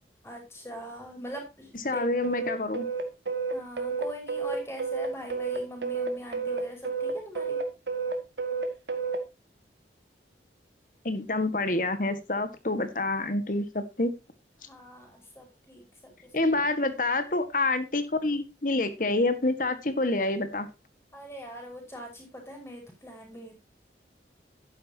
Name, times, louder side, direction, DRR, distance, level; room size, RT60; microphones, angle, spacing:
voice 1, 0.2-2.0 3.5-7.6 14.7-15.9 16.2-16.5 21.1-23.5, equal, 15° left, 2 dB, 5.2 m, -42 dB
voice 2, 1.9-2.9 11.1-14.1 16.3-20.7, left 2 dB, 50° left, 11 dB, 1.7 m, -27 dB
sound 1, 2.2-9.2, right 4 dB, 85° right, 2.2 m, -30 dB
12.0 x 10.0 x 2.9 m, 0.26 s
head